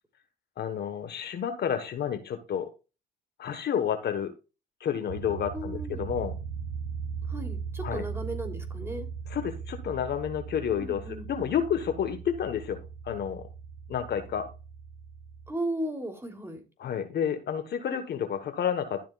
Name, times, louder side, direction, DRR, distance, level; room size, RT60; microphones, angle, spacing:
voice 1, 0.6-2.7 3.4-4.3 4.8-6.3 7.8-8.0 9.3-12.8 13.0-13.4 13.9-14.5 16.8-19.1, left 8 dB, 55° left, 9 dB, 1.3 m, -30 dB
sound 1, 5.1-15.5, right 6 dB, 85° right, 0.9 m, -38 dB
voice 2, 5.5-6.1 7.3-9.1 10.8-11.3 15.5-16.6, right 1 dB, 10° right, 4 dB, 3.1 m, -35 dB
12.5 x 7.4 x 2.4 m, 0.30 s
supercardioid pair, 75°, 21 cm